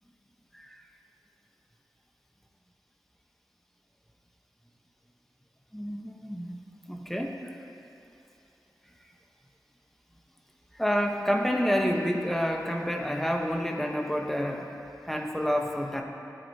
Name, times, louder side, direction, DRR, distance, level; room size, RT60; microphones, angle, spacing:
voice 1, 5.7-7.4 10.7-14.7 15.0-16.0, equal, 5° left, 1 dB, 1.1 m, -29 dB
16.5 x 8.6 x 2.9 m, 2.8 s
wide cardioid pair, 70°, 7 cm